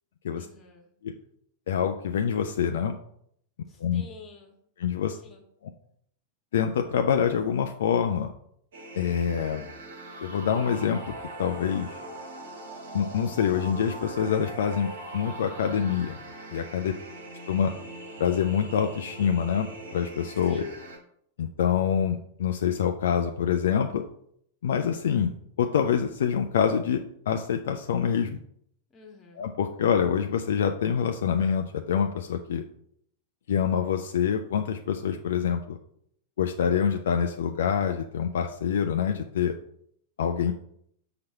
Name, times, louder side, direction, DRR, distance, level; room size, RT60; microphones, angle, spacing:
voice 1, 0.3-0.9 3.7-4.6 5.2-5.4 16.8-17.2 20.5-20.7 28.9-29.4, left 4 dB, 20° left, 1 dB, 1.5 m, -47 dB
voice 2, 1.7-2.9 3.8-4.0 4.8-5.2 6.5-8.3 9.0-9.7 10.2-11.1 11.4-12.0 12.9-16.2 16.5-16.9 17.5-17.7 18.2-19.7 19.9-20.6 21.4-24.0 24.6-25.3 25.6-28.4 29.4-32.6 33.5-35.8 36.4-39.5 40.2-40.5, left 8 dB, 60° left, 5 dB, 0.4 m, -26 dB
sound 1, 8.7-21.0, right 2 dB, 60° right, 1.5 m, -41 dB
6.1 x 2.9 x 5.5 m, 0.69 s
figure-of-eight pair, 95°, 0 cm